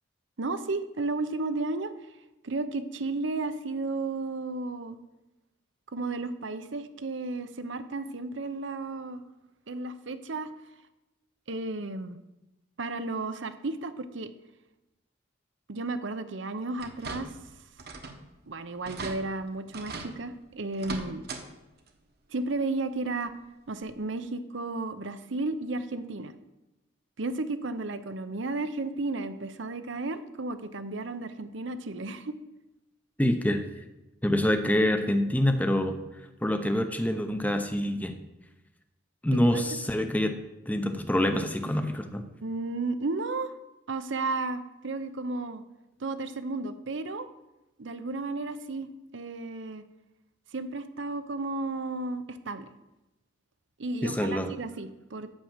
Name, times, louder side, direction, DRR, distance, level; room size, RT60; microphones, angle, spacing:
voice 1, 0.4-1.9 2.4-5.0 5.9-9.2 9.7-10.5 11.5-12.2 12.8-14.3 15.7-17.3 18.5-21.3 22.3-23.3 23.7-26.3 27.2-32.4 39.3-39.6 42.4-43.5 43.9-45.6 46.0-47.3 47.8-49.8 50.5-52.7 53.8-55.3, right 3 dB, 70° right, 11 dB, 0.7 m, -33 dB
sound 1, 16.8-17.5 17.8-18.2 18.5-18.6 18.8-19.2 19.7-20.1 20.7-21.4 21.8-21.9 23.3-23.4 23.9-24.0, right 3 dB, 55° right, 1.2 m, -39 dB
voice 2, 33.2-33.6 34.2-36.0 36.4-38.2 39.2-40.3 40.7-42.2 54.0-54.5, left 1 dB, 10° left, 6 dB, 0.7 m, -26 dB
8.8 x 6.4 x 7.3 m, 0.99 s
head